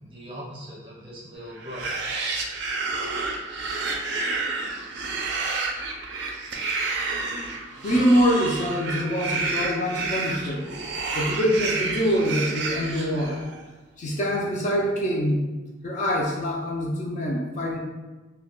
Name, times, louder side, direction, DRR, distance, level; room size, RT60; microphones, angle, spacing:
voice 1, 0.0-2.0, equal, 25° right, -5 dB, 0.7 m, -40 dB
sound 1, 1.6-13.6, right 3 dB, 60° right, 0.4 m, -30 dB
voice 2, 7.8-10.7 11.1-13.4 14.0-15.4 15.8-17.8, equal, 40° left, -2 dB, 0.4 m, -24 dB
2.2 x 2.1 x 3.6 m, 1.2 s
head